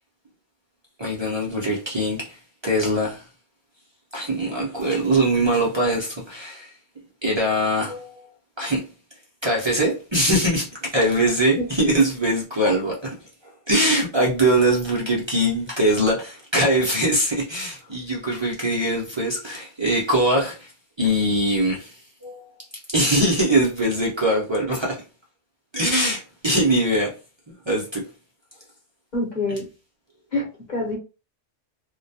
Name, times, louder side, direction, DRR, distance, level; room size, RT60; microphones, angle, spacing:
voice 1, 1.0-2.4 2.6-3.2 4.1-6.7 7.2-8.3 8.6-8.8 9.4-13.1 13.7-20.7 21.0-22.5 22.9-25.0 25.7-27.1 27.7-28.0, right 1 dB, 40° right, 0.4 m, -22 dB
voice 2, 11.6-12.0 29.1-29.6 30.3-31.0, left 2 dB, 40° left, 1.0 m, -27 dB
2.2 x 2.2 x 2.6 m
omnidirectional pair, 1.3 m